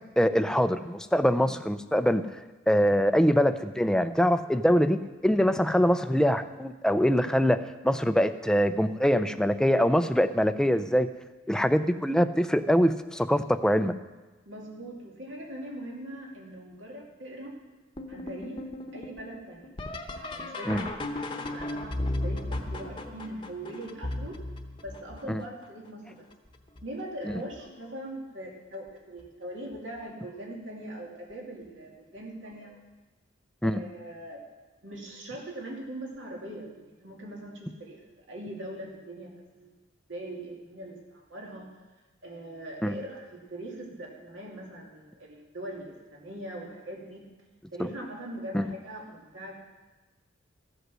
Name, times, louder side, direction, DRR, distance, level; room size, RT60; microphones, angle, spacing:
voice 1, 0.2-2.2 2.7-11.1 11.5-13.9 20.7-20.9 25.3-25.4 27.3-27.4 33.6-33.8 42.8-42.9 48.5-48.7, equal, 5° left, 10 dB, 0.4 m, -24 dB
voice 2, 14.5-17.6 18.1-18.6 18.9-19.7 20.1-24.4 24.8-26.3 26.8-32.7 33.6-34.4 34.8-39.7 40.1-41.7 42.2-47.3 47.7-49.5, right 1 dB, 70° right, -1 dB, 2.6 m, -41 dB
sound 1, 18.0-25.6 26.3-26.8 27.3-27.9 29.2-29.3 30.0-30.3 32.5-32.6 34.9-35.0, left 1 dB, 25° left, 0.9 m, -36 dB
14.5 x 8.2 x 6.1 m, 1.2 s
head